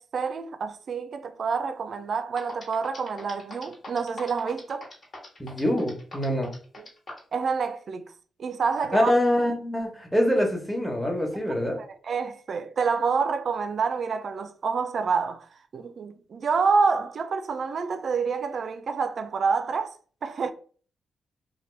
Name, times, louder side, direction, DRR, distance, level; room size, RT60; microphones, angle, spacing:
voice 1, 0.0-4.9 6.8-6.9 7.3-8.1 8.4-9.1 11.8-15.5 15.7-20.0 20.2-20.5, right 5 dB, 60° right, 0.3 m, -27 dB
sound 1, 2.0-2.1 2.4-7.3, left 2 dB, 55° left, 1.4 m, -41 dB
voice 2, 5.4-6.5 8.9-11.8, left 1 dB, 5° left, 1.0 m, -24 dB
2.7 x 2.2 x 3.2 m
cardioid pair, 65°, 0 cm